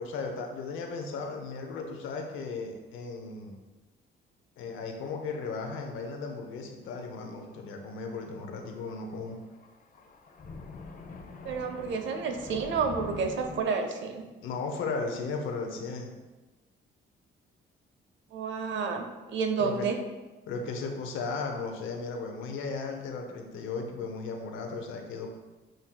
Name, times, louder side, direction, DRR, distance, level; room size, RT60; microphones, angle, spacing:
voice 1, 0.0-3.6 4.6-9.4 14.4-16.1 19.6-19.9 20.5-25.4, left 4 dB, 85° left, 3 dB, 0.7 m, -36 dB
Thunder, 5.7-6.0 6.3-6.4 7.4-13.6, left 3 dB, 45° left, 0.6 m, -45 dB
voice 2, 11.4-14.2 18.3-20.0, right 5 dB, 70° right, 5 dB, 0.6 m, -30 dB
7.6 x 2.6 x 2.2 m, 1.2 s
cardioid pair, 90°, 20 cm